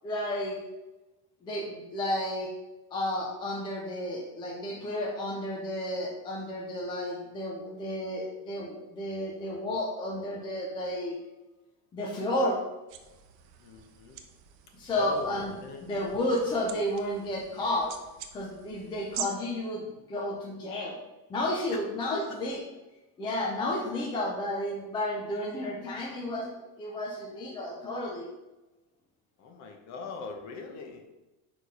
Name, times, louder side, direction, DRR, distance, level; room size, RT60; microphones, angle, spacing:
voice 1, 0.0-0.6 1.4-2.5 2.9-11.2 11.9-12.6 14.7-15.5 15.8-17.9 18.3-19.8 20.1-21.0 21.3-22.6 23.2-26.5 26.8-28.3, left 1 dB, 10° left, -1 dB, 0.4 m, -32 dB
sound 1, 12.9-19.3, right 10 dB, 50° right, 0.7 m, -45 dB
voice 2, 13.6-14.2 14.9-15.8 21.7-21.8 22.1-22.2 29.4-31.0, left 4 dB, 40° left, 4 dB, 0.9 m, -41 dB
4.9 x 4.3 x 5.3 m, 1.1 s
cardioid pair, 170°, 44 cm